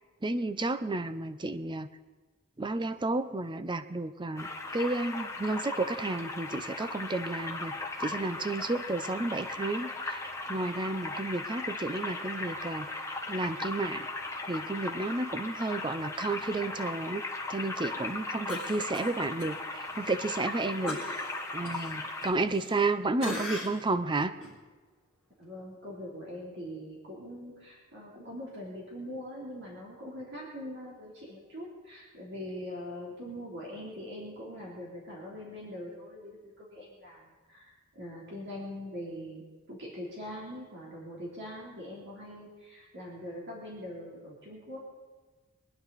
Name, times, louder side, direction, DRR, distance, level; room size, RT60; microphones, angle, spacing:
voice 1, 0.2-1.9 2.6-13.0 13.3-14.1 14.5-17.2 17.5-21.2 21.5-24.3, right 2 dB, 20° right, 12 dB, 0.6 m, -32 dB
sound 1, 4.4-22.3, left 2 dB, 15° left, 1.2 m, -38 dB
Cough, 18.5-19.5 19.9-20.0 20.9-22.9 23.2-23.9 24.4-24.5, left 2 dB, 5° right, 3.1 m, -39 dB
voice 2, 25.4-39.4 39.7-44.8, left 1 dB, 55° right, -4 dB, 3.2 m, -42 dB
23.5 x 10.0 x 4.1 m, 1.3 s
head